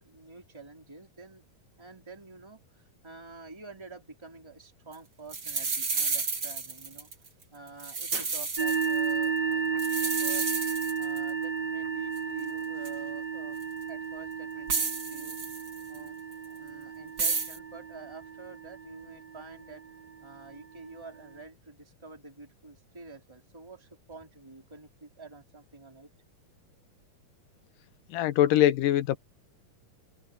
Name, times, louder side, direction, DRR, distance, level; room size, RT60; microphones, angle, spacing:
voice 1, 0.0-1.4 1.8-7.1 7.5-10.5 11.0-13.6 13.9-15.4 15.9-16.2 16.6-19.8 20.2-26.1, right 4 dB, 5° right, 3.9 m, -48 dB
sound 1, 4.9-5.0 5.3-7.3 7.7-9.2 9.8-11.3 12.2-12.3 12.8-12.9 13.6-13.7 14.7-16.0 17.2-17.6, right 4 dB, 30° right, 2.6 m, -31 dB
sound 2, 8.6-20.1, right 6 dB, 50° right, 0.4 m, -33 dB
voice 2, 28.1-29.2, left 12 dB, 75° left, 2.5 m, -23 dB
omnidirectional pair, 4.0 m